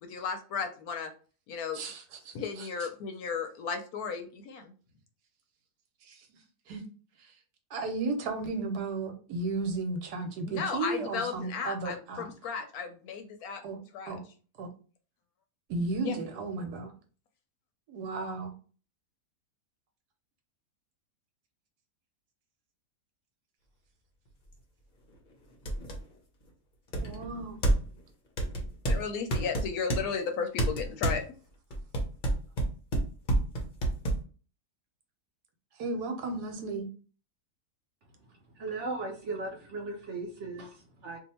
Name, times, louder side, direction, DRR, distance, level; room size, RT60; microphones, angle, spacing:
voice 1, 0.0-1.1 1.5-1.8 2.3-4.7 10.4-14.1 16.1-16.2 28.9-31.4, left 6 dB, 70° left, 6 dB, 0.9 m, -35 dB
voice 2, 1.7-2.7 6.0-6.3 6.7-6.8 7.2-7.3 7.7-12.3 13.6-13.8 14.1-14.2 14.6-14.7 15.7-16.9 17.9-18.5 27.0-27.6 35.8-36.9, right 3 dB, 75° right, 4 dB, 1.3 m, -34 dB
sound 1, 24.5-24.6 25.1-25.2 25.7-26.0 26.9-28.0 28.4-30.0 30.6-31.2 31.7-34.2, right 1 dB, 45° left, 0.6 m, -28 dB
voice 3, 38.5-41.2, right 3 dB, 60° right, 1 dB, 0.8 m, -37 dB
2.7 x 2.5 x 4.2 m, 0.38 s
omnidirectional pair, 1.7 m